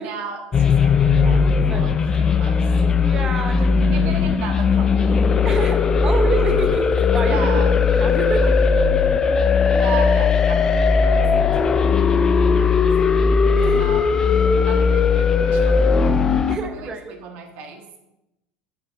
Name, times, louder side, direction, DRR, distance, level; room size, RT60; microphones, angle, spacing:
voice 1, 0.0-1.4 1.7-2.7 3.5-5.2 7.2-7.8 9.8-12.1 12.4-13.3 13.8-17.8, right 5 dB, 45° right, 4 dB, 1.6 m, -36 dB
sound 1, 0.5-16.6, left 5 dB, 15° left, 0.4 m, -17 dB
voice 2, 1.6-2.3 2.9-3.7 5.4-7.5 7.9-8.5 13.5-13.9 14.6-14.7 16.5-17.2, right 3 dB, 20° right, 7 dB, 0.9 m, -28 dB
9.2 x 5.5 x 5.9 m, 0.92 s
cardioid pair, 175°, 4 cm